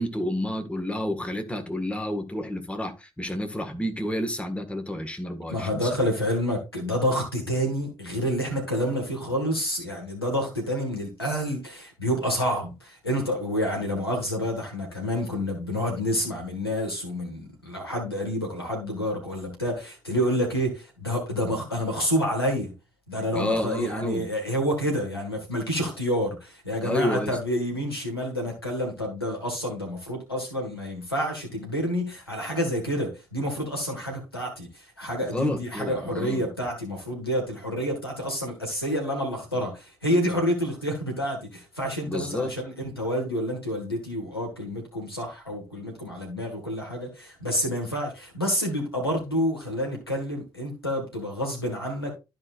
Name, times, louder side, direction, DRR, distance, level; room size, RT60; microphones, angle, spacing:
voice 1, 0.0-5.9 23.3-24.3 26.8-27.4 35.2-36.4 42.1-42.6, left 1 dB, 10° left, 1.7 m, -30 dB
voice 2, 5.5-22.7 23.1-52.1, equal, 90° left, 1.7 m, -28 dB
13.0 x 5.0 x 2.5 m
figure-of-eight pair, 45°, 12 cm